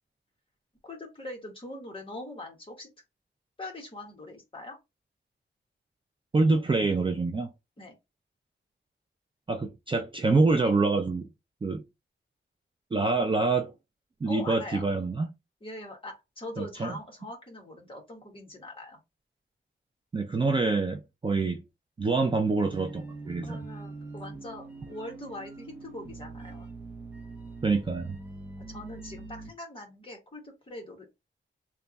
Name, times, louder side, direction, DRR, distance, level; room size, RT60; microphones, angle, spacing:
voice 1, 0.8-2.9 3.6-4.8 7.8-7.9 14.3-14.9 15.6-19.0 23.4-26.7 28.6-31.1, left 1 dB, 25° left, 1.3 m, -42 dB
voice 2, 6.3-7.5 9.5-11.3 11.6-11.8 12.9-13.7 14.2-15.3 16.6-16.9 20.1-21.6 22.0-23.6 27.6-28.2, right 3 dB, 25° right, 0.4 m, -26 dB
sound 1, 22.6-29.5, right 3 dB, 10° right, 0.8 m, -43 dB
3.4 x 2.3 x 4.0 m
wide cardioid pair, 170°, 20 cm